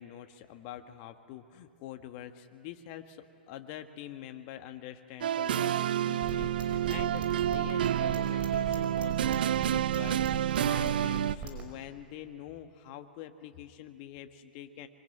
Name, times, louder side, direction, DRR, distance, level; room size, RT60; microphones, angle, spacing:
voice 1, 0.0-14.9, left 11 dB, 45° left, 7 dB, 1.7 m, -45 dB
sound 1, 5.2-11.4, right 11 dB, 65° right, 0.6 m, -29 dB
sound 2, 6.2-11.6, right 5 dB, 25° right, 5.3 m, -39 dB
25.0 x 24.5 x 9.7 m, 2.3 s
hypercardioid pair, 105°, 5 cm